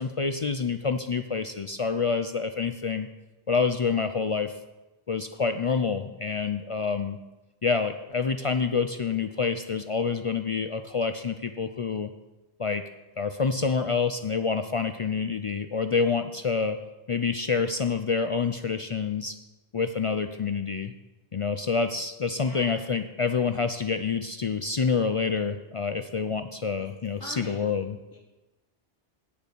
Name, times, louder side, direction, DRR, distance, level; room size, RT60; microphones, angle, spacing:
voice 1, 0.0-3.1 3.5-4.5 5.1-7.2 7.6-12.1 12.6-12.8 13.2-16.8 17.1-19.3 19.7-20.9 21.3-28.0, left 5 dB, 55° left, 8 dB, 0.3 m, -27 dB
voice 2, 22.3-22.9 26.8-26.9 27.2-27.8 28.1-28.2, left 1 dB, 20° left, -4 dB, 2.9 m, -43 dB
8.1 x 6.7 x 8.4 m, 1.1 s
omnidirectional pair, 1.1 m